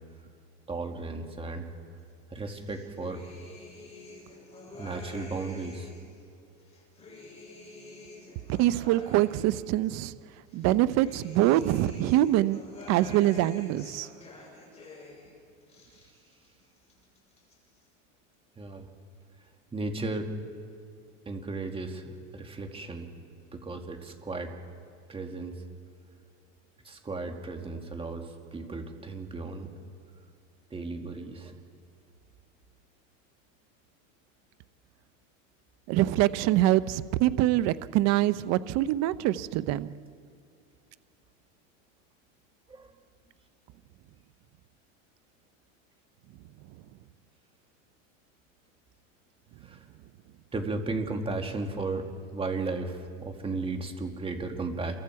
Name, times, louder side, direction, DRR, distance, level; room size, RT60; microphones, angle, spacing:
voice 1, 0.7-1.7 2.3-3.2 4.8-5.9 18.6-18.9 19.7-20.3 21.3-23.1 23.5-24.5 25.1-25.6 26.8-29.7 30.7-31.5 42.7-42.9 49.6-49.8 50.5-52.1 52.3-54.9, right 3 dB, 15° right, 4 dB, 2.1 m, -35 dB
sound 1, 2.5-6.1 6.6-10.0 10.5-15.3 15.6-16.5 16.8-17.5, left 2 dB, 15° left, 7.0 m, -48 dB
voice 2, 8.6-10.1 10.5-12.6 12.9-14.1 35.9-39.9, right 14 dB, 40° right, 15 dB, 0.7 m, -24 dB
28.0 x 23.0 x 4.7 m, 2.6 s
supercardioid pair, 130°, 40 cm